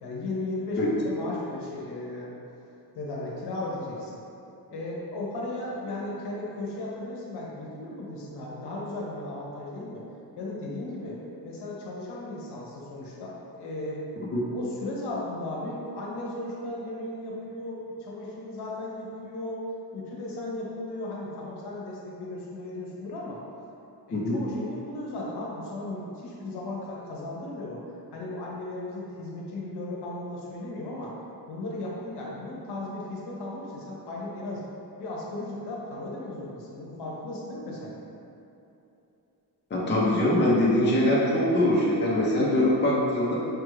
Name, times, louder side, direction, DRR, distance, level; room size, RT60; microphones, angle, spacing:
voice 1, 0.0-2.4 2.9-4.1 4.7-10.0 10.4-14.0 14.5-19.6 19.9-23.4 24.1-27.8 28.1-31.1 31.5-34.6 35.0-38.0, left 2 dB, 80° left, -4 dB, 0.8 m, -36 dB
voice 2, 39.7-43.3, left 1 dB, 25° left, -6 dB, 0.6 m, -23 dB
4.9 x 2.4 x 3.2 m, 2.8 s
wide cardioid pair, 135°, 40 cm